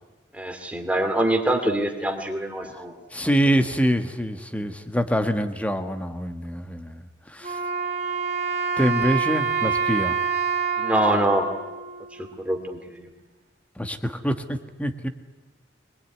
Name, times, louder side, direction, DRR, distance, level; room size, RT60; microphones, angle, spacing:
voice 1, 0.3-2.9 10.8-11.5 12.2-13.1, right 1 dB, 5° right, 4 dB, 2.6 m, -24 dB
voice 2, 3.1-7.6 8.8-10.2 13.8-15.1, equal, 10° left, 8 dB, 1.5 m, -25 dB
Wind instrument woodwind instrument, 7.4-12.6, right 6 dB, 45° right, 3.3 m, -27 dB
24.0 x 21.0 x 9.5 m, 1.1 s
head